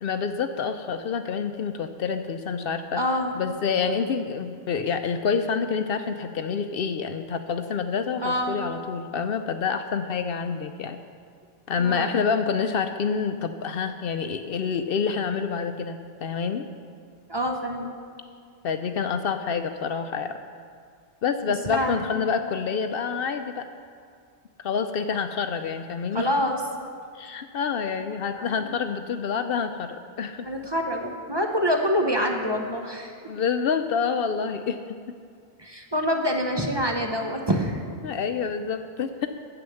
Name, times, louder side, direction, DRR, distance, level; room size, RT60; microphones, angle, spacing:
voice 1, 0.0-3.0 3.3-11.0 11.7-16.7 18.6-20.4 21.2-23.7 24.6-26.3 27.1-30.5 33.3-35.0 38.0-39.3, left 6 dB, 65° left, 9 dB, 0.7 m, -27 dB
voice 2, 3.0-3.3 8.2-8.6 11.8-12.1 17.3-17.9 21.5-22.3 26.1-26.6 28.3-28.7 30.4-33.1 35.6-37.8, equal, 25° right, 2 dB, 0.8 m, -26 dB
9.6 x 7.9 x 6.9 m, 2.2 s
omnidirectional pair, 1.1 m